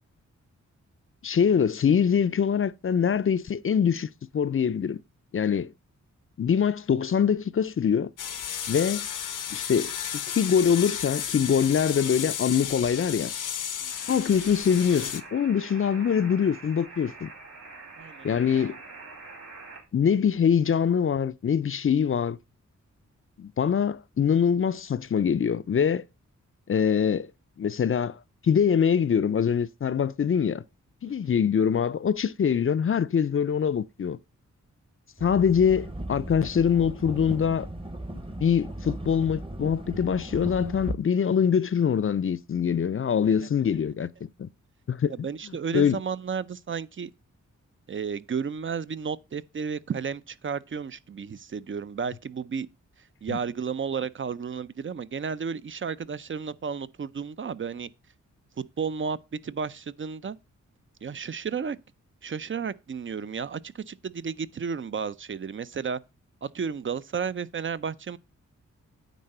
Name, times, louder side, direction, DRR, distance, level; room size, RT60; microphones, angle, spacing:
voice 1, 1.2-4.1 4.3-5.0 5.3-5.7 6.4-8.1 8.7-9.1 9.5-9.9 10.3-13.3 14.1-17.3 18.2-18.8 19.9-22.4 23.4-26.0 26.7-27.3 27.6-28.2 28.4-30.6 31.0-34.2 35.2-37.7 38.4-44.1 44.4-44.5 44.9-45.3 45.7-46.0 53.3-53.4, left 7 dB, 45° left, 0.5 m, -24 dB
sound 1, 8.2-15.2, left 9 dB, 80° left, 0.8 m, -33 dB
sound 2, 13.9-19.8, right 3 dB, 55° right, 4.1 m, -45 dB
voice 2, 18.0-18.7 31.0-31.2 43.4-43.5 45.1-47.1 47.9-52.7 53.2-57.9 58.6-59.2 59.4-60.4 61.0-61.8 62.2-66.0 66.4-68.2, right 6 dB, 40° right, 0.6 m, -33 dB
sound 3, 35.2-41.0, right 1 dB, 15° right, 1.0 m, -37 dB
9.3 x 4.0 x 6.5 m
cardioid pair, 60°, 31 cm